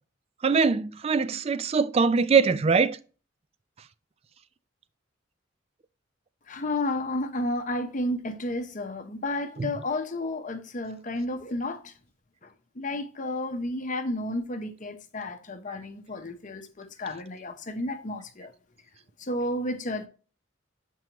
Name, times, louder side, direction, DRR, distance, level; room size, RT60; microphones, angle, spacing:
voice 1, 0.4-3.0 9.6-9.7, right 5 dB, 30° right, 0.3 m, -22 dB
voice 2, 6.5-11.9 12.8-18.5 19.2-20.1, left 1 dB, 40° left, 0.8 m, -32 dB
7.5 x 4.6 x 2.9 m
head